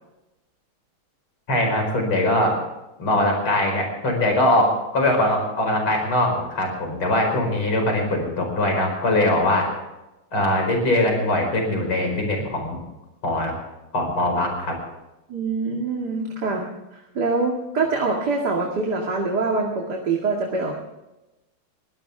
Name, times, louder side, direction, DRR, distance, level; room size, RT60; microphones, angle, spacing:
voice 1, 1.5-2.6 3.0-9.7 10.3-12.8 13.2-13.5 13.9-14.8, left 1 dB, 70° left, 3 dB, 5.7 m, -21 dB
voice 2, 15.3-20.8, right 3 dB, 50° right, 0 dB, 2.8 m, -25 dB
23.0 x 17.0 x 3.5 m, 0.99 s
omnidirectional pair, 2.3 m